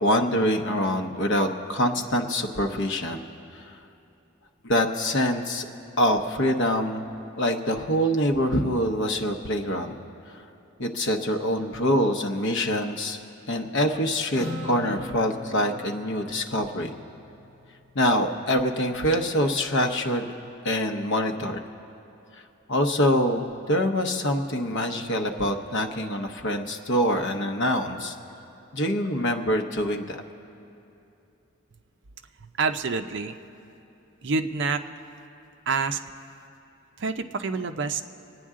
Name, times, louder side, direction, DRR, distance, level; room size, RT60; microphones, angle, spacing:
voice 1, 0.0-3.2 3.5-3.7 4.6-5.7 6.0-7.0 7.4-10.0 10.3-10.4 10.8-13.2 13.5-16.9 17.9-20.2 20.6-21.6 22.7-28.1 28.7-30.2, equal, 60° left, 4 dB, 0.9 m, -25 dB
Acoustic guitar, 14.3-18.0, left 2 dB, 5° left, 3.9 m, -40 dB
voice 2, 32.4-33.4 34.2-34.8 35.7-36.0 37.0-38.0, right 4 dB, 60° right, 7 dB, 0.6 m, -27 dB
26.0 x 9.4 x 3.7 m, 2.8 s
head